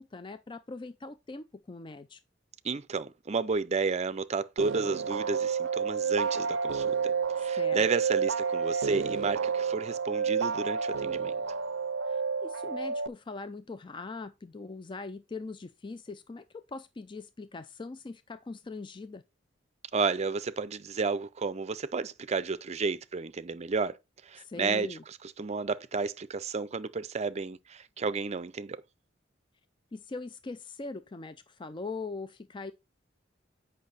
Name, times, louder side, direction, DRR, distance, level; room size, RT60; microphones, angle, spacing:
voice 1, 0.0-2.2 7.6-7.9 12.1-19.2 24.4-25.0 29.9-32.7, left 3 dB, 25° left, 0.4 m, -41 dB
voice 2, 2.6-11.3 19.9-24.0 24.2-28.8, right 4 dB, 35° right, 0.5 m, -32 dB
sound 1, 4.6-13.1, right 6 dB, 90° right, 0.5 m, -30 dB
8.5 x 5.6 x 4.0 m
head